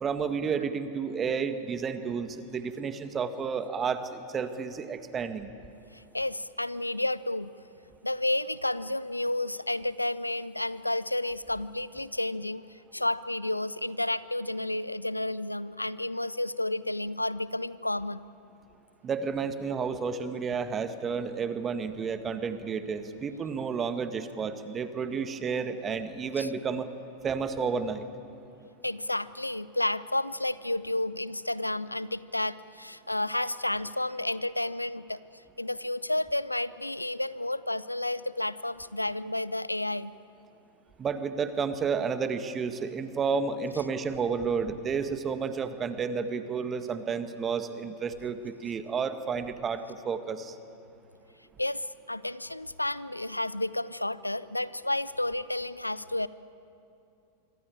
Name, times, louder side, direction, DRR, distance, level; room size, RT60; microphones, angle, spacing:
voice 1, 0.0-5.5 19.0-26.9 27.2-28.0 41.0-50.6, right 5 dB, 25° right, 10 dB, 1.7 m, -31 dB
voice 2, 5.9-7.5 8.0-18.2 26.4-26.5 28.8-35.2 35.6-40.1 51.6-56.3, left 1 dB, 85° left, 18 dB, 0.6 m, -31 dB
26.0 x 24.0 x 8.7 m, 2.8 s
figure-of-eight pair, 90°, 0 cm